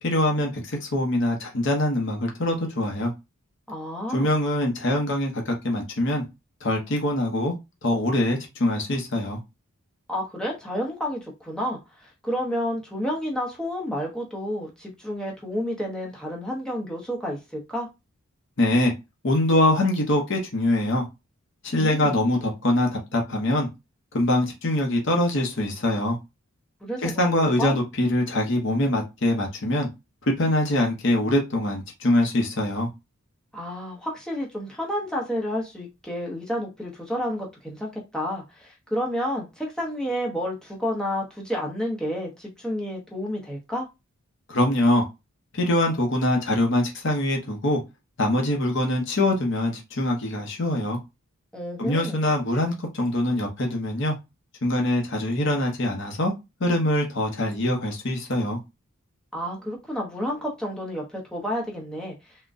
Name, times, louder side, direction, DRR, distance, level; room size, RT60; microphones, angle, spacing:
voice 1, 0.0-3.1 4.1-6.2 6.6-7.5 7.8-9.4 18.6-18.9 19.2-21.1 21.6-23.7 24.1-26.2 27.0-29.9 30.3-32.9 44.5-45.0 45.5-47.8 48.2-51.0 51.8-54.1 54.6-56.3 56.6-58.6, left 1 dB, 55° left, 0.7 m, -23 dB
voice 2, 3.7-4.3 10.1-17.9 21.7-22.2 26.8-27.8 33.5-43.9 51.5-52.2 59.3-62.1, equal, 5° left, 0.8 m, -30 dB
3.7 x 2.2 x 2.5 m
head